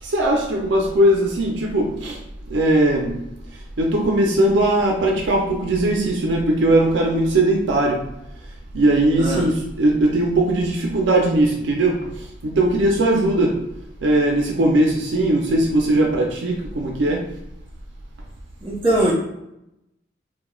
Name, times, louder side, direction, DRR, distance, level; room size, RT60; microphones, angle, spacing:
voice 1, 0.0-2.2 2.5-3.1 3.8-8.0 8.7-13.6 14.0-17.3, right 1 dB, 75° right, 0 dB, 0.4 m, -19 dB
voice 2, 18.6-19.1, right 1 dB, 25° right, -6 dB, 0.9 m, -20 dB
2.2 x 2.1 x 3.0 m, 0.84 s
head